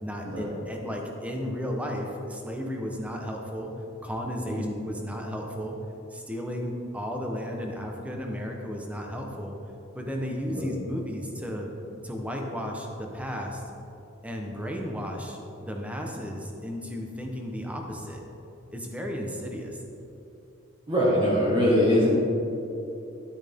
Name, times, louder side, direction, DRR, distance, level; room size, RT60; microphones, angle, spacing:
voice 1, 0.0-3.7 4.0-5.8 6.1-9.6 9.9-11.7 12.0-13.6 14.2-18.2 18.7-19.8, equal, 5° right, 1 dB, 1.1 m, -34 dB
voice 2, 20.9-22.1, equal, 25° right, -7 dB, 1.8 m, -22 dB
11.5 x 8.9 x 3.7 m, 2.8 s
head